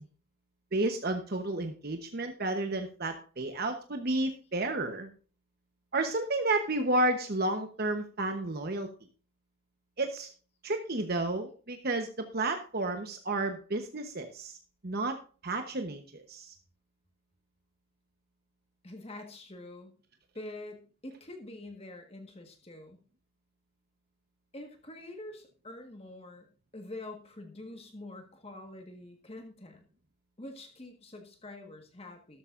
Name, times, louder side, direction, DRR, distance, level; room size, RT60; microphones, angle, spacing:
voice 1, 0.7-5.1 5.9-8.9 10.0-10.3 10.6-14.6 14.8-15.2 15.4-16.5, right 2 dB, 45° right, 6 dB, 1.0 m, -31 dB
voice 2, 18.8-19.9 20.3-23.0 24.5-26.5 26.7-29.9 30.4-32.4, left 2 dB, 30° left, 5 dB, 1.5 m, -46 dB
13.0 x 13.0 x 2.6 m, 0.38 s
head